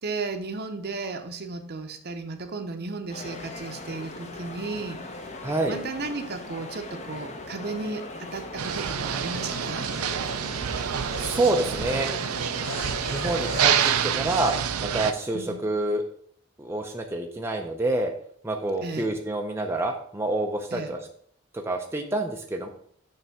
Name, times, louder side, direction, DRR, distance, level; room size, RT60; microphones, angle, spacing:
voice 1, 0.0-5.2 5.7-9.9 15.3-15.6 18.8-19.1 20.7-20.9, right 3 dB, 50° right, 7 dB, 0.7 m, -34 dB
sound 1, 3.1-14.0, left 2 dB, 30° left, 0.7 m, -40 dB
voice 2, 5.4-5.8 11.2-12.1 13.1-13.7 14.0-16.0 16.6-18.1 18.4-21.0 21.5-22.7, right 2 dB, 10° right, 2 dB, 0.5 m, -27 dB
sound 2, 8.3-14.7, left 4 dB, 65° left, 0.7 m, -42 dB
sound 3, 8.6-15.1, right 8 dB, 85° right, 0.5 m, -27 dB
6.9 x 3.3 x 5.9 m, 0.62 s
head